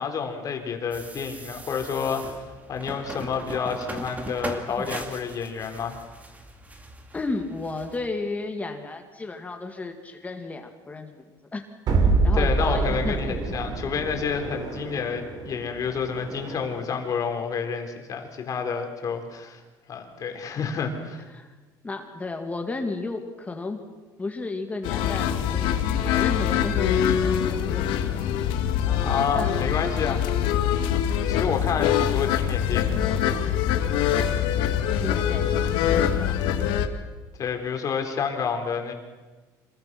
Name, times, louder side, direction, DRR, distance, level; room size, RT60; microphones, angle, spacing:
voice 1, 0.0-6.0 12.3-19.6 19.9-21.2 29.0-30.9 31.3-33.2 37.4-38.9, left 6 dB, 45° left, 4 dB, 3.6 m, -29 dB
sound 1, 0.9-8.1, right 2 dB, 20° right, 2.4 m, -39 dB
voice 2, 7.1-11.2 11.5-11.6 12.0-13.4 21.3-21.5 21.8-23.8 24.2-28.0 28.8-29.5 35.0-36.5, left 3 dB, 15° left, 5 dB, 2.2 m, -33 dB
sound 2, 11.9-17.0, right 3 dB, 55° right, 3.5 m, -26 dB
sound 3, 24.8-36.9, left 9 dB, 85° left, 1.9 m, -24 dB
26.5 x 21.5 x 6.1 m, 1.3 s
cardioid pair, 125°, 8 cm